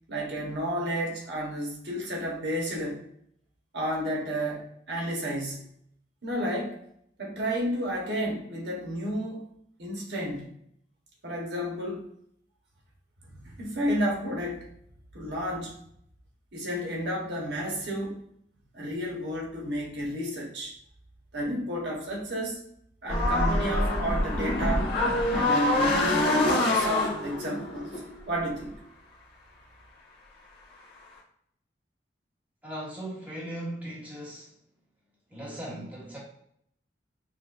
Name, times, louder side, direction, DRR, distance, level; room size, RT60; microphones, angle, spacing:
voice 1, 0.1-3.0 3.7-5.7 6.2-6.8 7.2-9.5 9.8-10.5 11.2-12.0 13.2-14.7 15.1-15.8 16.5-18.2 18.7-20.7 21.3-22.6 23.0-24.9 25.3-27.9 28.3-28.7, equal, 75° right, -2 dB, 1.0 m, -31 dB
sound 1, 23.1-28.6, left 1 dB, 65° left, 1.1 m, -25 dB
voice 2, 32.6-34.5 35.3-36.2, right 1 dB, 10° right, -6 dB, 1.3 m, -38 dB
6.1 x 2.2 x 2.5 m, 0.69 s
head